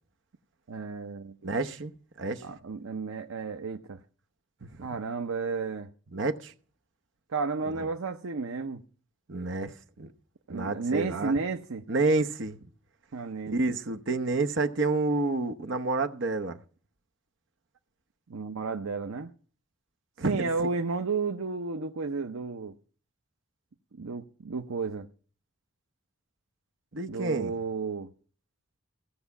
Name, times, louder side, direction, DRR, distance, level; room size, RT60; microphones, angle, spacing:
voice 1, 0.7-1.4 2.4-4.0 4.8-5.9 7.3-8.8 10.5-11.8 13.1-13.5 18.3-19.3 20.2-22.7 24.0-25.1 27.1-28.1, right 4 dB, 85° right, 0.7 m, -32 dB
voice 2, 1.4-1.9 2.2-2.4 4.6-4.9 6.1-6.5 7.7-7.8 9.3-10.1 10.5-11.4 11.9-12.7 13.5-16.6 20.2-20.5 26.9-27.5, right 3 dB, 60° right, 0.9 m, -29 dB
16.5 x 5.5 x 7.1 m
head